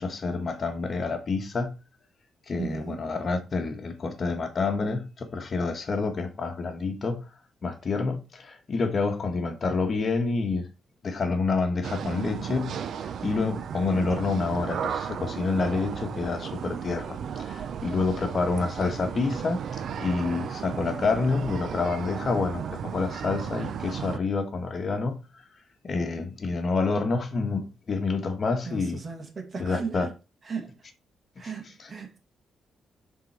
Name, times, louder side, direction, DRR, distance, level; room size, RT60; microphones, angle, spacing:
voice 1, 0.0-1.7 2.5-7.3 7.6-10.7 11.0-25.2 25.8-29.0 29.6-30.1 31.8-31.9, left 4 dB, 50° left, 1.3 m, -28 dB
voice 2, 2.6-3.2 28.6-30.1 30.4-30.7 31.4-32.2, right 5 dB, 45° right, 1.8 m, -36 dB
sound 1, 11.8-24.2, right 8 dB, 70° right, 0.5 m, -34 dB
7.5 x 3.8 x 4.4 m
cardioid pair, 65°, 0 cm